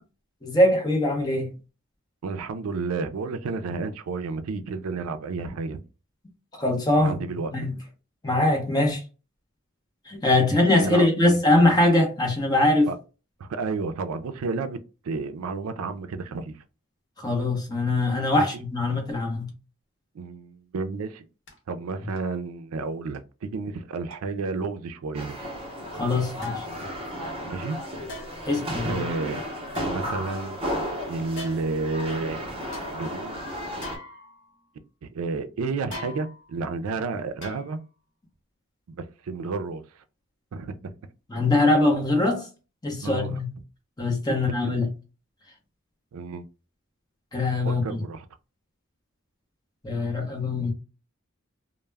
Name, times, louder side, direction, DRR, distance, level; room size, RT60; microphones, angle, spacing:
voice 1, 0.4-1.5 6.6-7.2 7.5-7.7 8.2-9.0 10.1-12.9 17.2-19.5 25.9-26.6 28.4-29.0 41.3-42.5 42.8-43.5 44.0-44.9 47.3-48.0 49.8-50.7, left 2 dB, 20° left, 0.7 m, -22 dB
voice 2, 2.2-5.8 7.0-7.5 10.4-10.5 10.8-11.4 12.9-13.0 13.4-16.5 18.4-18.6 20.1-21.3 21.7-25.4 27.4-27.8 28.8-29.4 29.8-30.6 31.0-32.4 32.9-33.5 35.0-37.8 38.9-39.8 40.5-40.9 43.0-43.4 46.1-46.4 47.6-48.2 50.6-50.7, right 4 dB, 80° right, 0.4 m, -31 dB
sound 1, 21.5-21.6 22.1-22.4 23.1-23.2 24.1-24.2 25.2-25.3 26.4-26.8 28.1-28.6 29.7-30.6 31.3-31.9 32.3-32.4 32.7-32.9 33.8-34.7 35.9-36.6 37.4-38.0 38.3-38.4, left 2 dB, 55° left, 0.9 m, -42 dB
sound 2, 25.1-34.0, equal, 25° right, 0.6 m, -33 dB
2.2 x 2.0 x 3.2 m
head